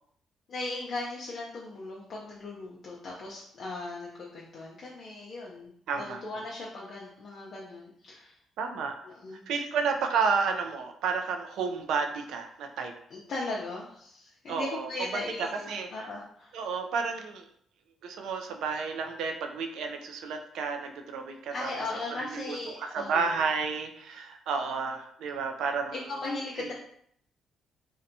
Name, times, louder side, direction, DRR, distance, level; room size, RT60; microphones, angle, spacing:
voice 1, 0.5-8.4 9.0-9.4 13.1-16.6 21.5-23.3 25.9-26.7, left 2 dB, 55° left, -4 dB, 0.5 m, -38 dB
voice 2, 5.9-6.2 8.6-9.0 9.5-12.9 14.5-15.2 15.7-16.1 16.5-17.4 18.0-21.7 22.2-22.6 22.9-26.0 26.6-26.7, right 5 dB, 80° right, 4 dB, 0.3 m, -31 dB
2.7 x 2.1 x 2.6 m, 0.66 s
cardioid pair, 90°, 0 cm